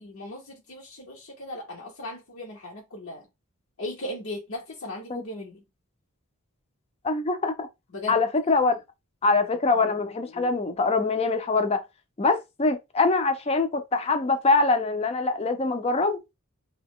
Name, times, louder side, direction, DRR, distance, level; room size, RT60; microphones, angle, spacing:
voice 1, 0.0-3.3 3.8-5.6 7.9-8.2 9.7-10.6, left 1 dB, 65° left, 0.8 m, -38 dB
voice 2, 7.0-7.7 8.1-8.8 9.2-11.8 12.2-16.2, left 3 dB, 25° left, 0.5 m, -24 dB
2.7 x 2.3 x 3.6 m
head